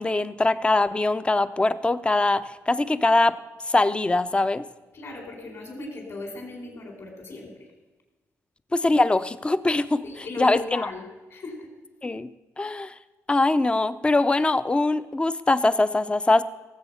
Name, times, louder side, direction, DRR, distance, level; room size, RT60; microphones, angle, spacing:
voice 1, 0.0-3.3 3.7-4.6 8.7-10.0 10.4-10.9 12.0-12.3 12.6-12.9 13.3-16.4, left 2 dB, 20° left, 14 dB, 0.6 m, -22 dB
voice 2, 4.9-7.7 10.0-11.7, left 2 dB, 55° left, 1 dB, 4.3 m, -37 dB
17.5 x 7.9 x 5.7 m, 1.2 s
cardioid pair, 105°, 6 cm